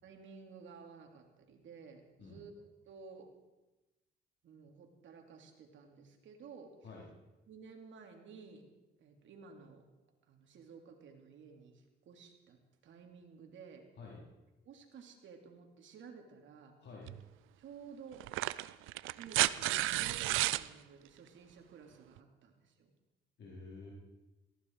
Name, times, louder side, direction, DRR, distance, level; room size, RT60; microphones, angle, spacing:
voice 1, 0.0-3.3 4.4-6.9 7.5-8.6 9.0-9.9 10.3-12.6 12.8-13.9 14.6-16.8 17.6-18.3 19.1-22.9, right 5 dB, 70° right, 3 dB, 3.0 m, -54 dB
voice 2, 16.8-17.1 23.4-23.9, left 4 dB, 60° left, -4 dB, 4.3 m, -49 dB
sound 1, 17.1-17.2 18.2-20.7 22.2-22.3, right 17 dB, 90° right, 0.5 m, -32 dB
18.0 x 15.5 x 4.7 m, 1.1 s
cardioid pair, 90°, 20 cm